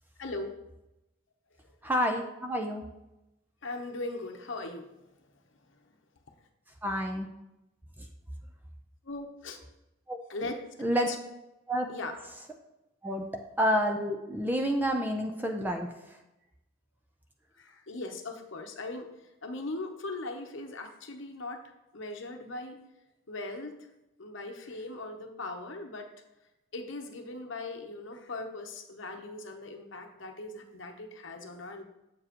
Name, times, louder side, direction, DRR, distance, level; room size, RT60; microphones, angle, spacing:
voice 1, 0.2-0.5 3.6-4.9 9.0-9.6 10.3-10.5 11.1-11.2 11.9-12.1 17.6-19.1 19.4-21.6 21.9-22.8 23.3-23.8 24.2-26.1 26.7-31.8, left 2 dB, 60° left, 4 dB, 0.9 m, -39 dB
voice 2, 1.8-2.8 6.8-7.3 10.1-10.2 10.8-11.1 11.7-11.9 13.0-13.2 13.6-15.9, equal, 10° right, 3 dB, 0.6 m, -28 dB
7.6 x 7.1 x 3.0 m, 0.94 s
head